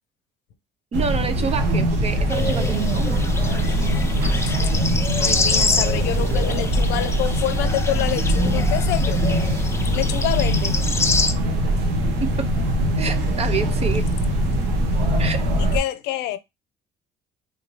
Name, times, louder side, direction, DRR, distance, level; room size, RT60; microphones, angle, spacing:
voice 1, 0.9-3.2 12.2-12.5 13.0-14.0 15.2-15.4, right 5 dB, 35° right, 0.7 m, -28 dB
sound 1, 0.9-15.8, equal, 85° right, 1.1 m, -22 dB
sound 2, 2.3-11.3, left 3 dB, 15° left, 0.5 m, -27 dB
voice 2, 5.2-9.2 9.9-10.9 15.1-15.2 15.6-16.4, left 12 dB, 90° left, 0.5 m, -27 dB
3.6 x 2.8 x 3.1 m
cardioid pair, 110°, 17 cm